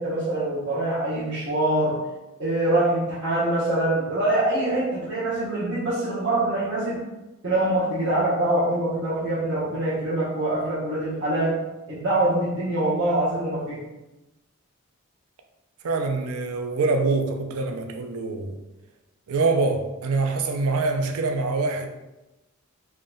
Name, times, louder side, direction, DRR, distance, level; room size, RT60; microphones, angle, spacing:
voice 1, 0.0-2.0 2.4-7.0 7.4-11.6 11.9-13.8, right 1 dB, 55° right, 0.9 m, -24 dB
voice 2, 15.8-18.6 19.3-21.9, right 3 dB, 80° right, 0.5 m, -25 dB
3.6 x 2.2 x 3.7 m
head